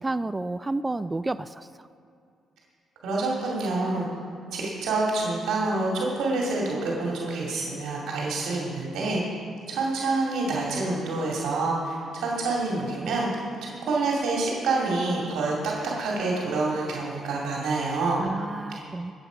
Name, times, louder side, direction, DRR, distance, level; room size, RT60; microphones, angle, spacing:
voice 1, 0.0-1.7 18.2-19.1, right 2 dB, 20° right, 13 dB, 0.3 m, -30 dB
voice 2, 3.0-4.1 4.5-9.2 9.7-13.3 13.6-15.7 16.0-18.2 18.7-18.8, right 3 dB, 80° right, -3 dB, 2.4 m, -27 dB
20.5 x 7.9 x 5.1 m, 2.5 s
cardioid pair, 90°, 0 cm